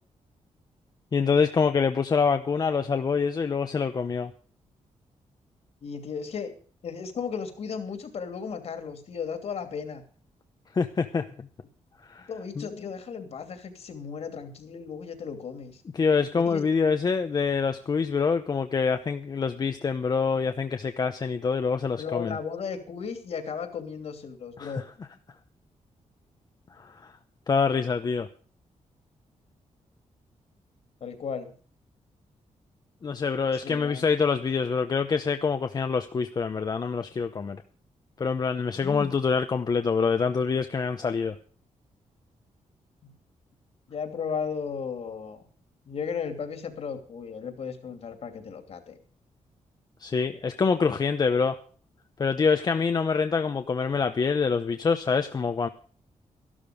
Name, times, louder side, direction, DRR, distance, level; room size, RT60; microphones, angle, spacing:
voice 1, 1.1-4.3 10.7-11.5 12.0-12.3 12.6-12.7 15.9-22.4 24.6-24.8 26.8-27.1 27.5-28.3 33.0-37.6 38.2-41.4 50.0-51.6 52.2-55.7, left 5 dB, 35° left, 7 dB, 0.8 m, -25 dB
voice 2, 5.8-6.5 6.8-10.0 12.3-15.8 16.3-16.6 22.0-24.8 31.0-31.5 33.5-34.1 38.7-39.1 43.0-43.1 43.9-45.5 45.9-49.0, left 6 dB, 55° left, 8 dB, 2.6 m, -35 dB
14.0 x 12.5 x 5.1 m, 0.42 s
wide cardioid pair, 170°, 12 cm